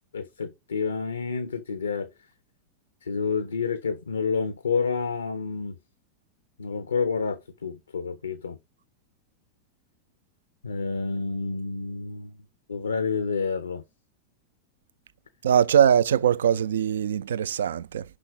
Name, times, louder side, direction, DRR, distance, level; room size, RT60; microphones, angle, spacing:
voice 1, 0.1-2.1 3.0-5.8 6.6-8.6 10.6-12.4 12.7-13.8, left 5 dB, 75° left, 0.6 m, -29 dB
voice 2, 15.4-18.0, right 9 dB, 65° right, 0.4 m, -21 dB
5.9 x 5.0 x 6.2 m
figure-of-eight pair, 90°, 0 cm